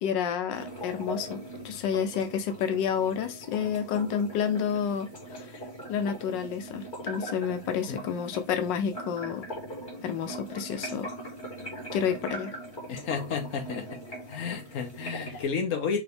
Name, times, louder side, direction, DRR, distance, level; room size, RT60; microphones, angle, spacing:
voice 1, 0.0-5.5 5.9-9.5 10.0-11.1 11.9-12.5 15.3-15.4, left 7 dB, 90° left, 1.4 m, -30 dB
sound 1, 0.5-15.4, right 1 dB, 25° left, 2.0 m, -41 dB
voice 2, 12.9-14.0 14.3-16.0, left 6 dB, 50° left, 1.3 m, -32 dB
4.9 x 2.8 x 3.3 m
omnidirectional pair, 1.9 m